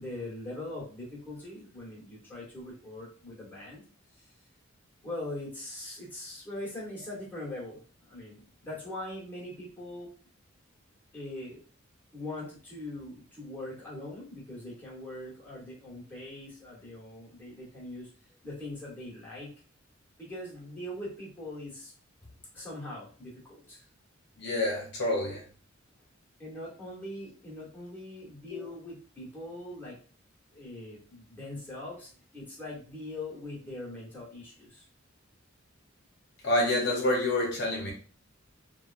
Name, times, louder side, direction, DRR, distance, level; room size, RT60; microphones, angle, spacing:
voice 1, 0.0-3.8 4.1-4.3 5.0-10.1 11.1-11.6 12.1-18.1 18.4-19.5 20.2-21.9 22.5-23.9 26.4-30.0 30.5-34.9, left 1 dB, 10° left, -6 dB, 1.1 m, -41 dB
voice 2, 24.4-25.4 28.5-28.7 36.4-37.9, left 1 dB, 55° left, -2 dB, 0.7 m, -28 dB
3.1 x 2.2 x 2.4 m, 0.41 s
head